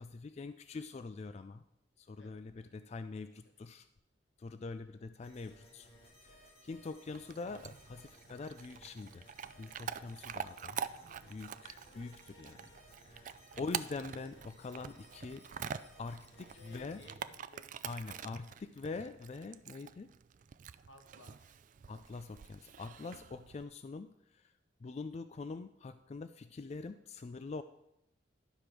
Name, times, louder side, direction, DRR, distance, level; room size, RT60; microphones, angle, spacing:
voice 1, 0.0-1.6 2.0-3.9 4.4-5.9 6.2-9.2 9.6-10.8 11.3-12.7 13.0-15.4 16.0-17.0 17.8-20.1 21.9-24.5 24.8-27.6, left 3 dB, 35° left, 11 dB, 0.3 m, -44 dB
voice 2, 2.2-2.7 4.9-5.1 13.5-13.7 16.3-17.8 18.1-18.7 20.9-21.6, left 2 dB, 85° left, 5 dB, 1.3 m, -60 dB
sound 1, 5.2-17.1, equal, 50° left, 3.3 m, -60 dB
Chewing mastication / Dog, 7.1-23.6, right 7 dB, 45° right, 0.3 m, -46 dB
11.5 x 5.1 x 6.0 m, 0.81 s
head